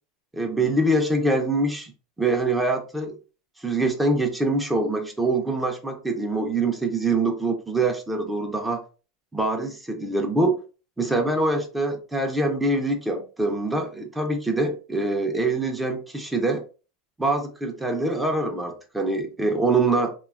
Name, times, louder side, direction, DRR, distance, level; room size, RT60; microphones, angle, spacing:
voice 1, 0.3-1.9 2.2-3.2 3.6-8.8 9.3-10.6 11.0-16.6 17.2-20.1, right 2 dB, 10° right, 0.4 m, -24 dB
2.7 x 2.2 x 2.3 m
supercardioid pair, 130°, 0 cm